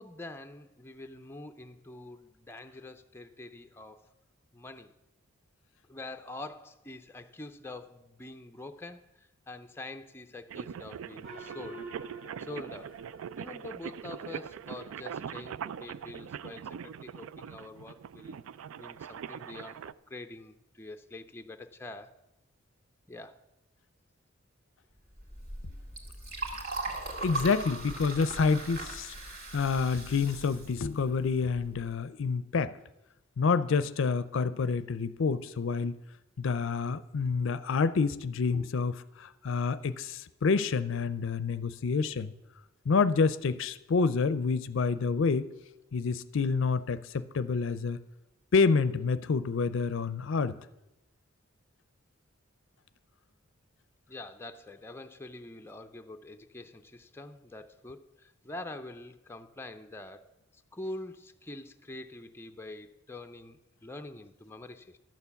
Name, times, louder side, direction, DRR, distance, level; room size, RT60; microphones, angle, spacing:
voice 1, 0.0-4.1 4.5-4.9 5.9-11.8 12.4-13.0 13.4-18.4 18.8-22.1 23.1-23.4 54.1-65.0, left 2 dB, 10° left, 6 dB, 0.5 m, -45 dB
sound 1, 10.5-19.9, right 8 dB, 90° right, 0.3 m, -42 dB
Gong, 11.2-14.2, right 1 dB, 70° right, 2.4 m, -49 dB
Liquid, 25.1-31.8, right 2 dB, 50° right, 2.2 m, -39 dB
voice 2, 27.2-29.1 29.5-32.7 33.4-36.0 36.4-42.3 42.9-45.5 45.9-48.0 48.5-50.6, left 5 dB, 65° left, 14 dB, 0.5 m, -28 dB
12.0 x 6.9 x 7.0 m, 0.93 s
head